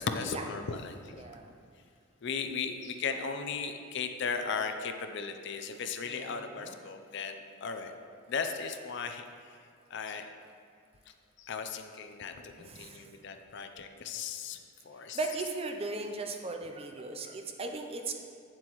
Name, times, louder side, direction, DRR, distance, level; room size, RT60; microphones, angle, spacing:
voice 1, 0.0-1.3 2.2-7.9 8.3-9.6 9.9-10.3 11.1-15.2, left 5 dB, 60° left, 7 dB, 0.5 m, -37 dB
voice 2, 1.2-1.5 6.1-6.8 12.6-13.1 15.1-18.1, right 3 dB, 30° right, 4 dB, 0.5 m, -37 dB
8.7 x 7.6 x 3.1 m, 2.2 s
head